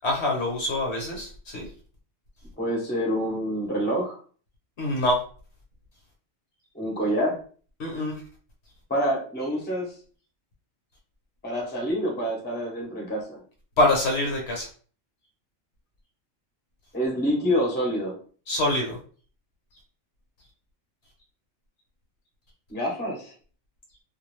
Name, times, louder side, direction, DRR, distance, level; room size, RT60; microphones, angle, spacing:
voice 1, 0.0-1.7 4.8-5.2 7.8-8.2 13.8-14.7 18.5-19.0, left 1 dB, 60° left, -1 dB, 1.0 m, -25 dB
voice 2, 2.6-4.2 6.7-7.4 8.9-9.9 11.4-13.4 16.9-18.1 22.7-23.3, equal, 10° left, -2 dB, 0.6 m, -27 dB
2.4 x 2.4 x 3.1 m, 0.42 s
omnidirectional pair, 1.4 m